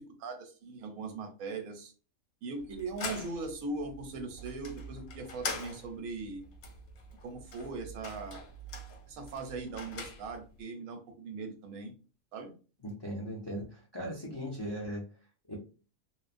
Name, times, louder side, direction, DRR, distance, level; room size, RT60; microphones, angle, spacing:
voice 1, 0.0-1.9 2.4-6.4 7.2-8.4 9.1-11.9 12.3-12.5, right 3 dB, 85° right, 5 dB, 1.1 m, -40 dB
sound 1, 2.6-10.6, left 3 dB, 85° left, 1.1 m, -43 dB
voice 2, 12.8-15.0 15.5-15.6, equal, 45° left, -3 dB, 0.3 m, -38 dB
3.1 x 2.0 x 2.4 m, 0.36 s
omnidirectional pair, 1.5 m